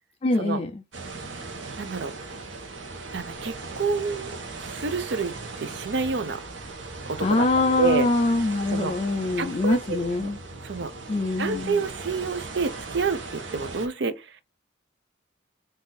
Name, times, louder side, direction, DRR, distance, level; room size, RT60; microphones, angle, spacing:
voice 1, 0.2-0.8 7.2-10.4 11.1-11.8, left 2 dB, 30° left, 0.3 m, -24 dB
sound 1, 0.9-13.9, right 3 dB, 80° right, 1.0 m, -38 dB
voice 2, 1.8-2.1 3.1-4.3 4.6-6.4 7.1-8.1 8.7-8.9 9.4-10.3 10.6-10.9 11.4-14.3, right 4 dB, 60° right, 0.5 m, -28 dB
3.9 x 2.6 x 3.9 m
head